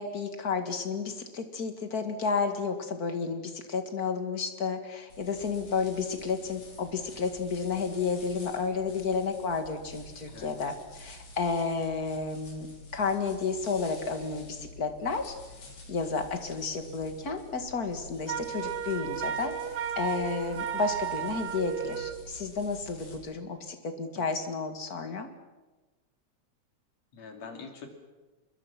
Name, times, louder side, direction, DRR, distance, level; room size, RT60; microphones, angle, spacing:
voice 1, 0.0-12.7 12.9-15.3 15.9-19.5 20.0-25.3, left 5 dB, 35° left, 7 dB, 2.1 m, -31 dB
sound 1, 5.1-23.1, equal, 80° left, 5.8 m, -49 dB
voice 2, 10.3-10.7 27.1-27.9, left 5 dB, 65° left, 4 dB, 3.9 m, -45 dB
Wind instrument woodwind instrument, 18.3-22.2, right 10 dB, 70° right, 0.9 m, -34 dB
26.5 x 22.0 x 6.0 m, 1.2 s
omnidirectional pair, 3.3 m